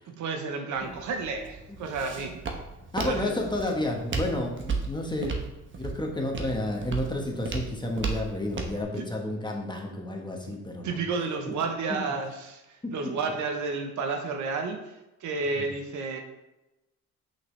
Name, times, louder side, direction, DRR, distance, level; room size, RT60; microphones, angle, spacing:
voice 1, 0.1-2.4 3.0-3.3 9.0-9.1 10.5-10.6 10.8-16.2, right 4 dB, 75° right, 5 dB, 1.0 m, -31 dB
Walk footsteps, 0.8-8.8, right 4 dB, 40° right, 1.1 m, -35 dB
voice 2, 2.9-5.3 5.8-11.0 11.5-11.6 11.9-12.0 12.8-12.9 15.6-15.7, left 1 dB, 15° left, 1 dB, 1.2 m, -31 dB
5.9 x 5.7 x 3.3 m, 0.97 s
cardioid pair, 90°, 30 cm